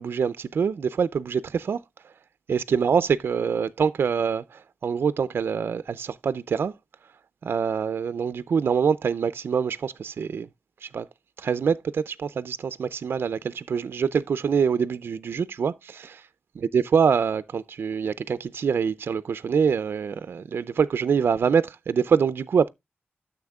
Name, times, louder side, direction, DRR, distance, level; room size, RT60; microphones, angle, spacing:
voice 1, 0.0-2.1 2.5-6.7 7.0-7.1 7.4-10.5 10.8-11.1 11.4-16.3 16.7-22.7, right 6 dB, 60° right, 0.4 m, -25 dB
13.0 x 7.0 x 2.3 m
wide cardioid pair, 145°, 4 cm